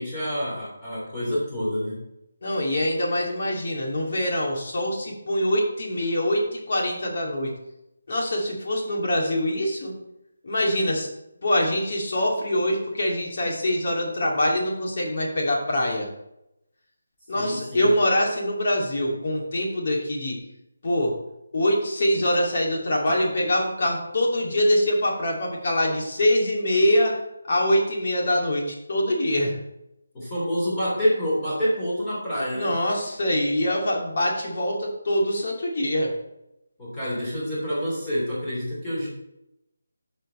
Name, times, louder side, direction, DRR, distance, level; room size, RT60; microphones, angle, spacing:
voice 1, 0.0-2.0 17.3-17.9 30.1-32.8 36.8-39.1, equal, 15° left, -10 dB, 3.4 m, -27 dB
voice 2, 2.4-7.5 8.1-9.9 10.4-11.1 11.4-16.1 17.3-20.4 20.8-21.1 21.5-27.2 27.5-29.6 32.5-36.1, left 1 dB, 50° left, -2 dB, 2.5 m, -24 dB
13.5 x 4.6 x 4.3 m, 0.86 s
figure-of-eight pair, 155°, 0 cm